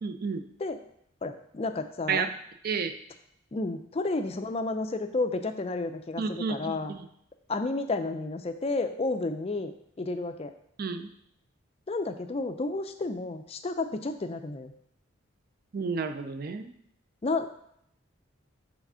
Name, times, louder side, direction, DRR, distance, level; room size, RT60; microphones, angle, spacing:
voice 1, 0.0-0.4 2.1-2.3 2.6-2.9 6.2-7.0 10.8-11.1 15.7-16.7, right 5 dB, 45° right, 8 dB, 0.4 m, -31 dB
voice 2, 1.2-2.3 3.5-6.9 7.5-9.7 10.0-10.5 11.9-14.7 17.2-17.5, left 3 dB, 30° left, 8 dB, 0.4 m, -31 dB
4.8 x 3.5 x 5.5 m, 0.72 s
head